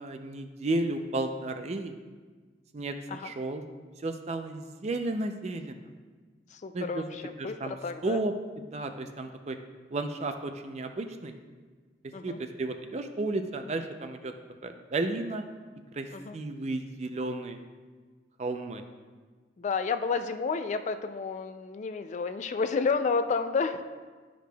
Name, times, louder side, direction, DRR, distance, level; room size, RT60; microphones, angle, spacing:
voice 1, 0.0-1.9 2.7-3.6 4.0-5.8 6.7-7.0 7.4-7.8 8.0-9.6 9.9-11.4 12.2-14.3 14.6-15.5 15.9-17.6 18.4-18.8, right 2 dB, 40° right, 7 dB, 0.4 m, -33 dB
voice 2, 6.5-8.2 12.1-12.4 16.1-16.4 19.6-23.8, left 5 dB, 40° left, 9 dB, 0.3 m, -31 dB
11.5 x 5.0 x 2.3 m, 1.4 s
head